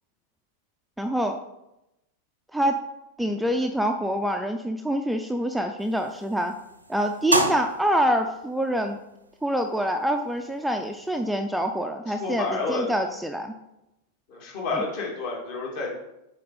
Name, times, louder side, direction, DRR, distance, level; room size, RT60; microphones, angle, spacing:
voice 1, 1.0-1.4 2.5-2.8 3.2-6.5 6.9-9.0 9.4-13.5 14.7-14.8, equal, 5° right, 5 dB, 0.5 m, -26 dB
sound 1, 5.8-11.2, right 1 dB, 80° right, 0.7 m, -33 dB
voice 2, 12.1-12.9 14.3-15.9, left 3 dB, 50° left, -2 dB, 2.5 m, -29 dB
7.4 x 4.6 x 4.2 m, 0.89 s
figure-of-eight pair, 90°, 0 cm